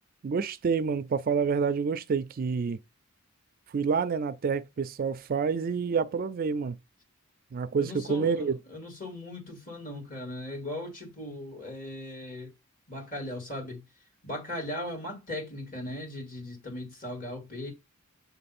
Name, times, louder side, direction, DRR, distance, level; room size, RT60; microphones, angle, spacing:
voice 1, 0.2-2.8 3.7-6.8 7.5-8.6, right 5 dB, 40° right, 0.3 m, -28 dB
voice 2, 7.8-12.5 12.9-13.8 14.2-17.7, left 1 dB, 40° left, 2.1 m, -38 dB
7.1 x 3.2 x 4.2 m
head